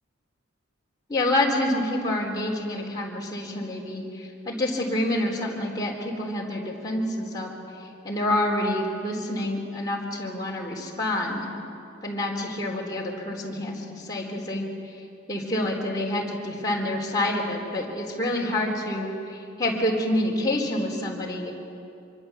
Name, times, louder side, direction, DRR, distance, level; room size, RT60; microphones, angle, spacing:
voice 1, 1.1-7.5 8.0-11.4 12.0-14.6 15.3-21.5, left 1 dB, 20° left, -3 dB, 3.9 m, -27 dB
25.5 x 24.5 x 7.3 m, 2.6 s
head